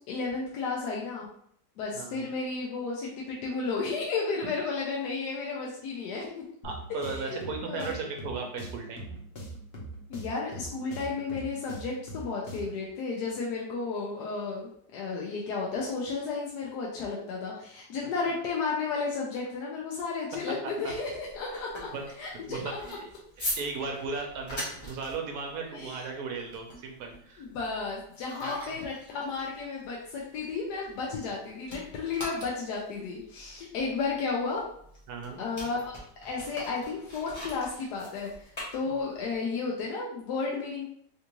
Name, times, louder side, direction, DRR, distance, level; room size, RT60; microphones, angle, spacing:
voice 1, 0.1-1.3 1.8-6.4 6.9-7.9 10.1-21.9 22.2-22.8 25.6-26.0 27.4-34.6 35.4-35.9 36.2-40.8, left 4 dB, 75° left, -3 dB, 1.2 m, -33 dB
voice 2, 1.9-2.3 6.6-9.2 18.2-18.3 20.6-20.9 21.5-21.6 21.9-23.1 23.4-27.5 28.4-28.6 35.1-35.4, right 4 dB, 65° right, 2 dB, 1.1 m, -37 dB
sound 1, 6.6-12.9, right 1 dB, 45° left, 0.9 m, -42 dB
sound 2, 20.9-31.4 31.6-39.3, left 1 dB, 25° left, 0.6 m, -42 dB
3.5 x 2.5 x 2.9 m, 0.66 s
omnidirectional pair, 1.8 m